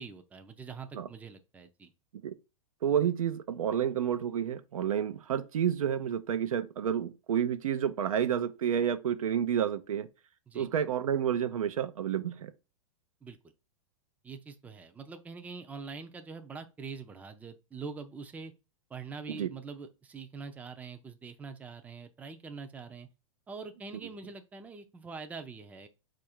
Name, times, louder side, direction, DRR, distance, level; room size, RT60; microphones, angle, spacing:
voice 1, 0.0-1.9 10.5-10.7 13.2-13.4 14.2-18.5 18.9-23.1 23.5-25.9, right 4 dB, 10° right, 0.4 m, -44 dB
voice 2, 2.8-10.1 10.5-12.5 19.4-19.5, right 9 dB, 85° right, 0.5 m, -30 dB
4.6 x 2.5 x 4.3 m
hypercardioid pair, 120°, 17 cm